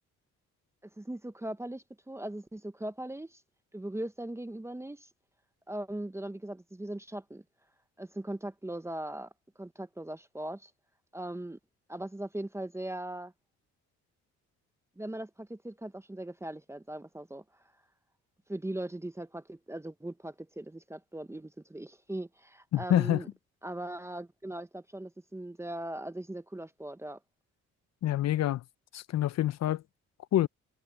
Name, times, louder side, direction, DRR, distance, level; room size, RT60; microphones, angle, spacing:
voice 1, 1.0-3.4 3.7-5.1 5.7-7.4 8.0-9.3 9.6-10.7 11.1-11.6 11.9-13.3 15.0-17.4 18.5-23.3 23.6-27.2, right 1 dB, 10° right, 0.9 m, -39 dB
voice 2, 22.7-23.2 28.0-28.6 28.9-29.8 30.3-30.5, left 13 dB, 60° left, 0.6 m, -27 dB
cardioid pair, 90°, 30 cm